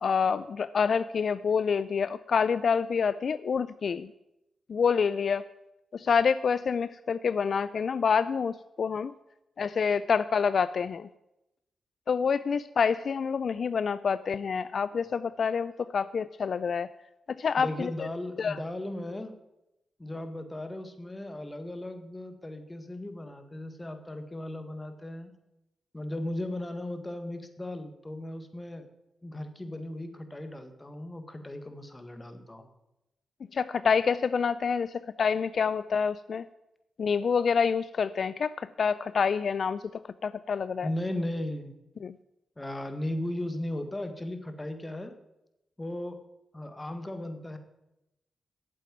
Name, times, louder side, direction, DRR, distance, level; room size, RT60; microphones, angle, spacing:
voice 1, 0.0-4.1 4.7-5.4 5.9-9.1 9.6-11.1 12.1-16.9 17.4-18.1 18.4-18.6 33.5-36.5 37.0-39.8 40.2-40.9 42.0-42.1, left 6 dB, 65° left, 15 dB, 0.3 m, -27 dB
voice 2, 17.6-19.4 20.0-25.3 25.9-28.9 29.2-32.7 40.8-41.7 42.6-45.1 45.8-46.2 46.5-47.6, left 1 dB, 20° left, 7 dB, 1.7 m, -36 dB
8.6 x 7.6 x 9.0 m, 0.90 s
cardioid pair, 60°, 0 cm